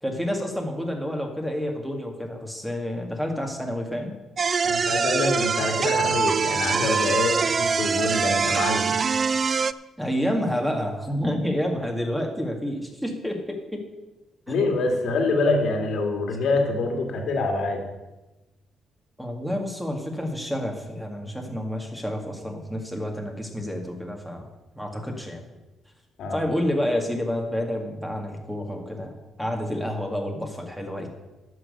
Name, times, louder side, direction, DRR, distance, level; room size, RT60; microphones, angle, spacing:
voice 1, 0.0-4.1 9.4-9.6 10.0-13.8 14.5-14.6 19.2-24.5 24.8-25.4 26.3-31.1, equal, 5° right, 2 dB, 2.3 m, -29 dB
sound 1, 4.4-9.7, right 5 dB, 40° right, 0.4 m, -23 dB
voice 2, 4.6-8.9 14.5-17.8 26.2-26.4, left 3 dB, 70° left, 3 dB, 2.4 m, -25 dB
11.0 x 6.3 x 8.1 m, 1.1 s
cardioid pair, 90°, 0 cm